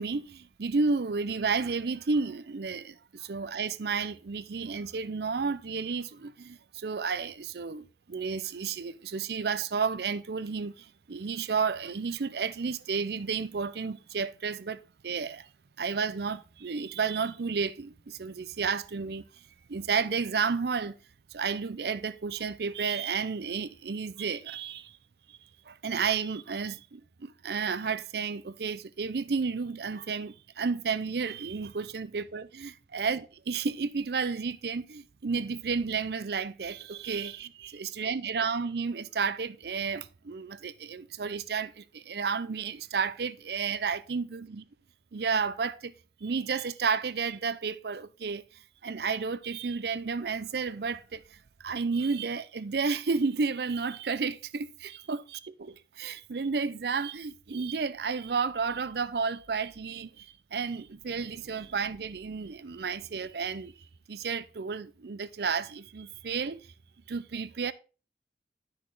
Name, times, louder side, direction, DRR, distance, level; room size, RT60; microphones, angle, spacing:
voice 1, 0.0-15.5 15.8-19.2 19.7-20.9 21.3-25.0 25.7-44.6 45.1-45.9 46.2-48.4 48.8-63.7 64.1-66.7 67.1-67.7, right 5 dB, 65° right, 0.5 m, -32 dB
10.5 x 6.4 x 3.7 m
head